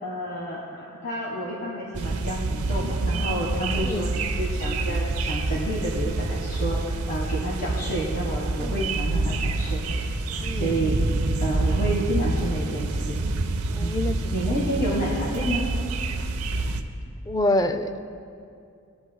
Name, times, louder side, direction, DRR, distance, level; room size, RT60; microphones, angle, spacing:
voice 1, 0.0-9.8 10.5-11.0 11.4-13.2 13.8-14.0 14.3-15.7, right 1 dB, 45° left, -5 dB, 1.5 m, -29 dB
sound 1, 1.9-16.8, right 2 dB, 75° right, 0.7 m, -27 dB
voice 2, 3.8-4.1 8.6-9.0 10.4-10.8 13.8-14.4 17.3-18.0, left 1 dB, 15° left, 9 dB, 0.4 m, -27 dB
19.5 x 11.0 x 2.2 m, 2.5 s
head